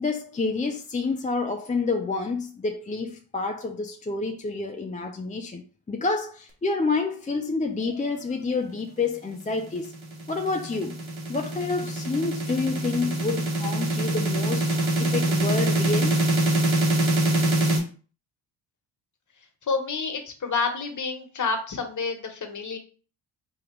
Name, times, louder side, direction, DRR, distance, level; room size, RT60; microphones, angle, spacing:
voice 1, 0.0-9.9 10.3-11.0 11.3-16.2, left 3 dB, 15° left, 0.6 m, -28 dB
sound 1, 9.7-17.8, right 1 dB, 75° right, 1.7 m, -24 dB
voice 2, 19.6-22.8, left 4 dB, 40° left, 1.4 m, -29 dB
3.7 x 3.0 x 4.6 m
supercardioid pair, 65°, 47 cm